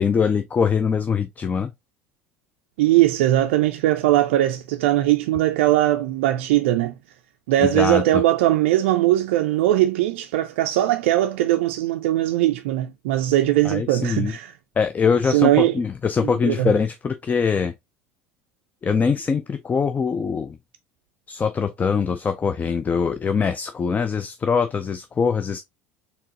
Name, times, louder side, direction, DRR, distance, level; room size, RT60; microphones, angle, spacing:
voice 1, 0.0-1.7 7.7-8.2 13.6-14.3 14.8-17.7 18.8-20.6 21.3-25.6, left 6 dB, 25° left, 0.4 m, -23 dB
voice 2, 2.8-6.9 7.5-14.5 15.3-15.8 16.2-16.7, right 14 dB, 65° right, 0.4 m, -20 dB
4.4 x 3.4 x 2.8 m
figure-of-eight pair, 70°, 7 cm